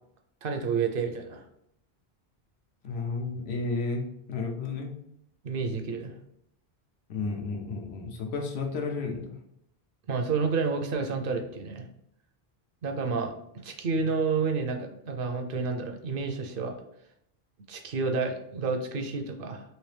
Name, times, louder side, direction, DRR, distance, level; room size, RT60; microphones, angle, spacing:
voice 1, 0.4-1.4 5.4-6.1 10.1-11.8 12.8-13.3 13.6-16.8 17.7-19.6, right 4 dB, 65° right, 5 dB, 0.7 m, -30 dB
voice 2, 2.8-4.9 7.1-9.4 14.0-14.1, left 3 dB, 85° left, 2 dB, 1.0 m, -32 dB
3.2 x 2.8 x 3.2 m, 0.75 s
omnidirectional pair, 1.1 m